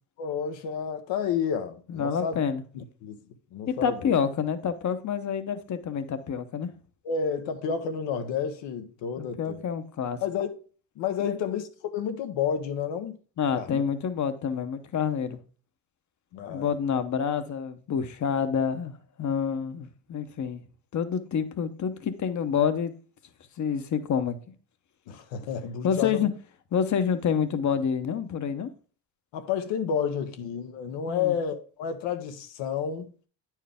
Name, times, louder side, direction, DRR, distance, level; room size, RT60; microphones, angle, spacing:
voice 1, 0.2-2.4 2.7-3.2 3.5-4.1 7.0-9.6 10.2-10.6 11.0-13.2 13.6-13.8 16.3-16.7 25.1-26.3 29.3-33.1, left 7 dB, 85° left, 1.0 m, -30 dB
voice 2, 1.9-2.6 3.7-6.7 9.2-10.2 11.2-11.4 13.4-15.4 16.5-20.6 20.9-22.9 23.6-24.4 25.8-26.3 26.7-28.7 31.1-31.4, left 7 dB, 40° left, 0.9 m, -28 dB
8.9 x 4.6 x 3.5 m
cardioid pair, 95°, 43 cm